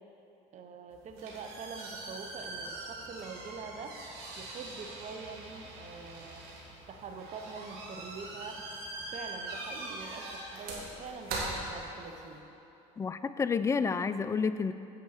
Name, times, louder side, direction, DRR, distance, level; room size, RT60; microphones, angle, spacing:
voice 1, 0.5-3.9 4.4-6.4 6.9-8.6 9.1-12.4, right 4 dB, 45° right, 4 dB, 0.9 m, -44 dB
sound 1, 0.9-12.4, right 2 dB, 70° right, 2.0 m, -42 dB
voice 2, 13.0-14.7, left 5 dB, 20° left, 12 dB, 0.3 m, -30 dB
8.6 x 5.4 x 6.4 m, 2.9 s
supercardioid pair, 85°, 16 cm